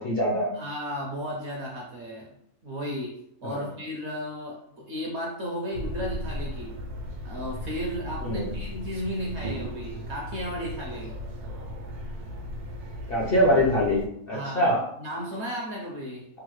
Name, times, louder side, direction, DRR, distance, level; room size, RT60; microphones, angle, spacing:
voice 1, 0.0-0.5 3.4-3.7 8.2-8.5 13.1-14.8, equal, 55° left, -5 dB, 0.7 m, -24 dB
voice 2, 0.5-2.4 2.6-6.8 7.2-11.2 14.3-16.3, equal, 60° right, -2 dB, 0.8 m, -34 dB
sound 1, 5.7-14.1, equal, 80° right, 1.3 m, -36 dB
3.4 x 2.2 x 3.1 m, 0.71 s
omnidirectional pair, 1.6 m